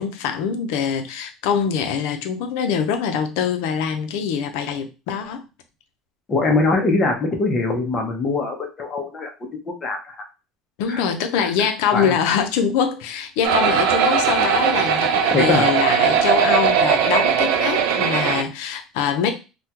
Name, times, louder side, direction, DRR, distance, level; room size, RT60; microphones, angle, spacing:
voice 1, 0.0-5.4 10.8-19.3, left 7 dB, 75° left, 0.6 m, -23 dB
voice 2, 6.3-9.3 9.8-10.0 10.9-11.0 11.9-12.1 15.3-15.7, left 3 dB, 20° left, 0.7 m, -21 dB
sound 1, 13.4-18.4, right 7 dB, 70° right, 0.4 m, -19 dB
3.5 x 2.3 x 2.8 m
cardioid pair, 175°, 0 cm